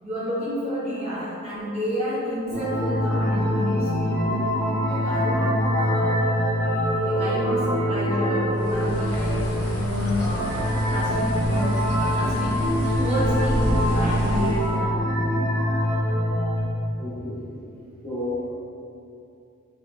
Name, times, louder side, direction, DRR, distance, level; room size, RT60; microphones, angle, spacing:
voice 1, 0.0-6.1 7.0-10.6 10.9-15.0, equal, 30° right, -9 dB, 0.9 m, -30 dB
sound 1, 2.5-16.6, equal, 25° left, 0.8 m, -24 dB
Bird, 8.5-14.8, equal, 80° left, 0.6 m, -31 dB
voice 2, 17.0-17.6 18.0-18.5, left 2 dB, 5° left, -14 dB, 1.4 m, -32 dB
4.0 x 3.2 x 2.4 m, 2.6 s
head